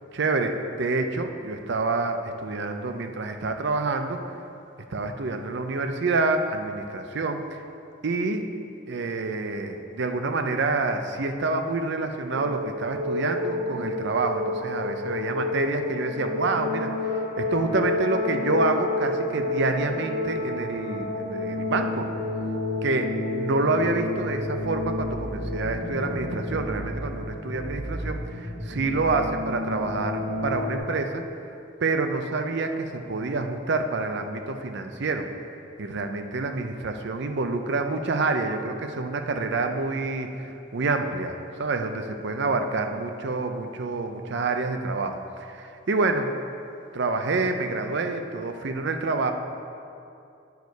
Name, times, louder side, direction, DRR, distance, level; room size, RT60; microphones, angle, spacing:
voice 1, 0.1-4.2 4.9-7.6 8.0-8.5 8.9-22.1 22.8-31.2 31.8-35.3 35.8-46.3 46.9-49.3, right 3 dB, 60° right, 6 dB, 0.5 m, -27 dB
sound 1, 12.3-30.8, left 2 dB, 40° right, 1.6 m, -30 dB
9.5 x 4.7 x 4.6 m, 2.6 s
head